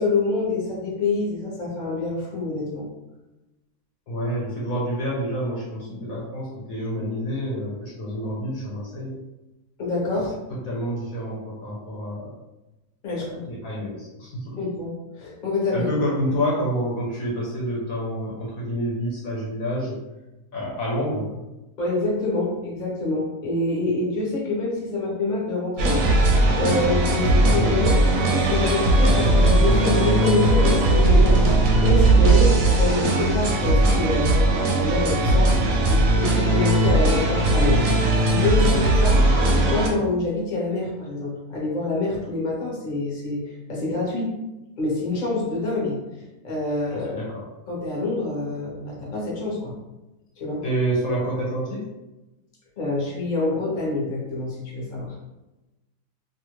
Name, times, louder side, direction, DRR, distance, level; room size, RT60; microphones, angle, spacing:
voice 1, 0.0-2.9 9.8-10.3 13.0-13.4 14.6-15.9 21.8-26.0 26.6-35.5 35.9-37.9 38.3-43.4 43.7-44.3 44.8-46.0 46.4-47.2 47.7-49.7 50.4-50.6 52.8-55.1, left 3 dB, 35° left, -5 dB, 0.9 m, -26 dB
voice 2, 4.1-9.1 10.7-12.3 13.4-14.6 15.7-20.0 20.5-21.4 47.1-47.4 50.6-51.8, equal, 65° left, -5 dB, 1.1 m, -28 dB
sound 1, 25.8-39.9, right 2 dB, 65° right, 0.9 m, -18 dB
2.8 x 2.4 x 3.0 m, 1.0 s
omnidirectional pair, 1.7 m